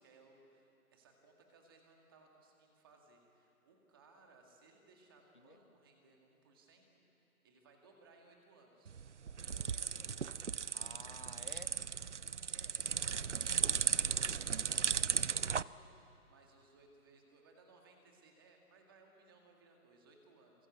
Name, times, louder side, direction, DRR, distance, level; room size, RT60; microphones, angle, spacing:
voice 1, 0.0-9.0 9.3-10.3 12.5-20.7, right 3 dB, 15° right, 2 dB, 1.9 m, -64 dB
sound 1, 8.9-15.6, right 6 dB, 55° right, 0.5 m, -36 dB
voice 2, 10.7-11.7 12.9-13.7 15.3-15.7, left 1 dB, 35° left, 10 dB, 0.6 m, -56 dB
27.0 x 23.0 x 8.4 m, 2.9 s
hypercardioid pair, 175°, 45 cm